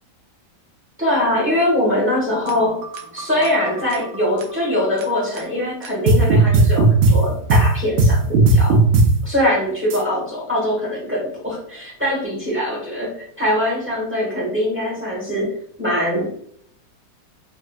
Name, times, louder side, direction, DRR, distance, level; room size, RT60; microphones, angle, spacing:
voice 1, 1.0-2.8 3.1-8.3 8.5-8.8 9.2-15.5 15.8-16.3, left 1 dB, 10° right, -5 dB, 0.8 m, -22 dB
sound 1, 2.5-4.4 5.0-5.1 5.4-5.5 5.8-7.1 7.5-7.6 8.0-9.1 9.9-10.0, right 2 dB, 65° right, 0.9 m, -15 dB
4.1 x 2.6 x 2.3 m, 0.66 s
omnidirectional pair, 1.9 m